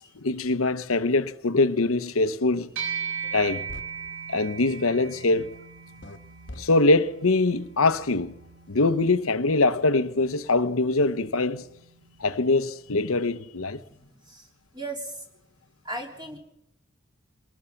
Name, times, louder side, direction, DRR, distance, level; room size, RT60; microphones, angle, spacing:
voice 1, 0.2-2.7 3.3-3.7 4.3-5.5 6.6-8.3 8.7-11.6 12.2-13.8, left 3 dB, 80° left, 1.0 m, -23 dB
sound 1, 2.8-12.4, right 7 dB, 85° right, 3.6 m, -39 dB
sound 2, 3.2-3.4 3.7-3.9 6.0-6.2 6.5-6.6, left 1 dB, 55° left, 1.4 m, -40 dB
voice 2, 13.8-14.5 14.7-15.2 15.8-16.4, right 2 dB, 20° right, 3.5 m, -37 dB
23.5 x 20.0 x 5.9 m
head